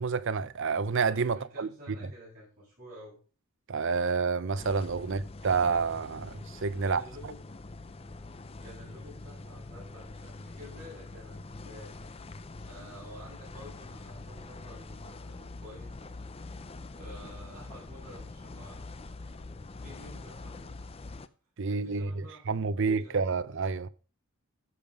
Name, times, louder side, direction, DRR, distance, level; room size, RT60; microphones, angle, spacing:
voice 1, 0.0-1.7 3.7-7.0 21.6-23.9, right 5 dB, 55° right, 0.6 m, -29 dB
voice 2, 1.3-3.2 5.0-5.2 6.8-7.4 8.3-16.0 16.9-19.4 19.8-20.8 21.7-23.2, equal, 40° right, 7.3 m, -50 dB
sound 1, 4.6-21.3, left 2 dB, 25° left, 0.5 m, -44 dB
14.5 x 5.5 x 5.2 m
head